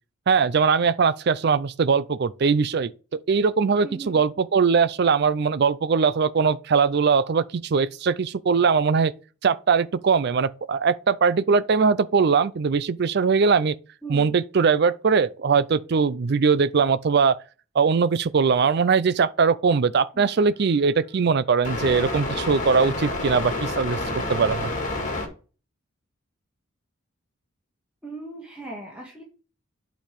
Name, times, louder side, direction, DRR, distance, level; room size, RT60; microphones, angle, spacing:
voice 1, 0.3-9.1 9.4-13.8 14.1-17.4 17.7-24.0 24.3-24.7, right 5 dB, 50° right, 0.4 m, -21 dB
voice 2, 3.8-4.2 14.0-14.3 20.1-20.4 28.0-29.2, right 3 dB, 5° right, 1.7 m, -38 dB
sound 1, 21.6-25.3, left 2 dB, 35° left, 2.0 m, -28 dB
9.0 x 5.1 x 3.5 m
head